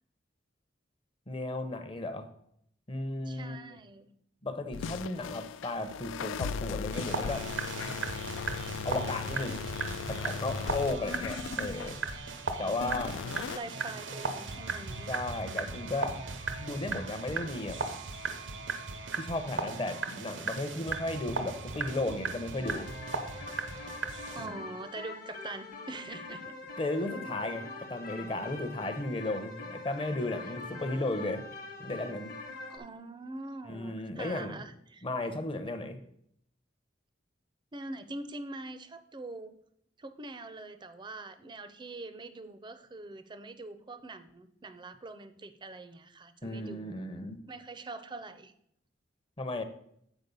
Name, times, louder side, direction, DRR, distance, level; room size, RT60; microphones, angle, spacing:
voice 1, 1.3-2.3 2.9-3.6 4.4-7.5 8.8-9.6 10.1-12.0 12.6-13.2 15.1-16.2 16.6-17.8 19.2-22.9 24.4-24.5 26.8-31.4 31.8-32.3 33.7-34.6 35.0-36.0 46.4-47.4 49.4-49.6, left 2 dB, 30° left, 9 dB, 0.7 m, -34 dB
voice 2, 3.3-4.1 12.9-15.1 24.3-26.6 32.7-35.1 37.7-39.6 40.0-46.9 47.5-48.5, right 2 dB, 25° right, 11 dB, 0.5 m, -44 dB
sound 1, 4.7-12.2 12.7-13.6, left 6 dB, 80° left, 0.3 m, -38 dB
sound 2, 6.9-24.5, right 4 dB, 75° right, 0.8 m, -37 dB
sound 3, 22.6-32.8, left 3 dB, 55° left, 1.0 m, -44 dB
8.1 x 4.3 x 5.4 m, 0.72 s
head